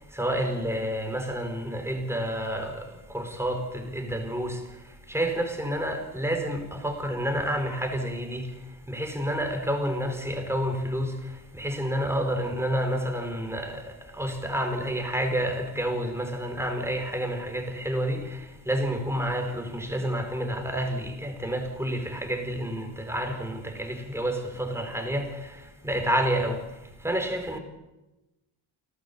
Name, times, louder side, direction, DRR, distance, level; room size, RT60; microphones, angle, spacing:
voice 1, 0.1-4.6 5.1-8.5 8.9-26.6 27.0-27.6, equal, 5° right, 4.7 m, -29 dB
29.5 x 12.5 x 7.2 m
cardioid pair, 85°, 43 cm